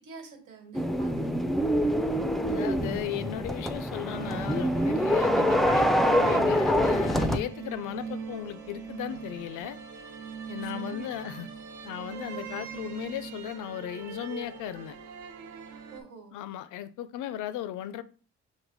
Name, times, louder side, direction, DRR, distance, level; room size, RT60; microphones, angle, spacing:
voice 1, 0.0-1.5 10.7-11.5 15.9-16.4, right 4 dB, 90° right, 1.6 m, -47 dB
sound 1, 0.7-7.4, equal, ahead, 0.3 m, -25 dB
voice 2, 2.5-9.8 10.5-11.5 11.8-15.0 16.3-18.0, left 12 dB, 85° left, 0.5 m, -36 dB
sound 2, 4.1-16.0, right 6 dB, 70° right, 0.9 m, -41 dB
6.1 x 2.1 x 3.9 m
cardioid pair, 90°, 30 cm